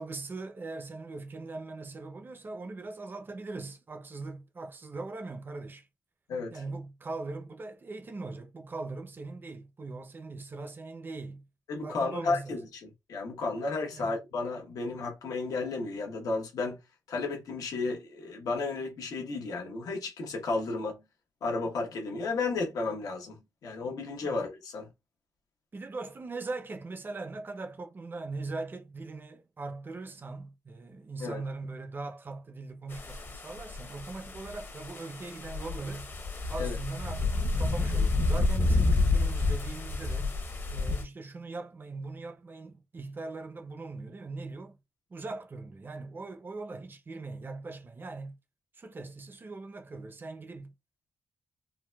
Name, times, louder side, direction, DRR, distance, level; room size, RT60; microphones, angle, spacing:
voice 1, 0.0-5.9 6.5-11.5 11.8-12.6 13.9-14.1 24.2-24.4 25.7-36.1 36.5-40.4 40.7-44.8 45.1-48.4 48.7-50.7, right 3 dB, 35° right, 0.6 m, -40 dB
voice 2, 6.3-6.6 11.7-12.6 13.1-16.8 17.1-21.0 21.4-24.9 31.2-31.4 36.6-36.8, left 3 dB, 80° left, 1.0 m, -33 dB
sound 1, 32.9-41.0, left 3 dB, 35° left, 0.8 m, -29 dB
3.8 x 2.2 x 2.3 m
cardioid pair, 75°, 6 cm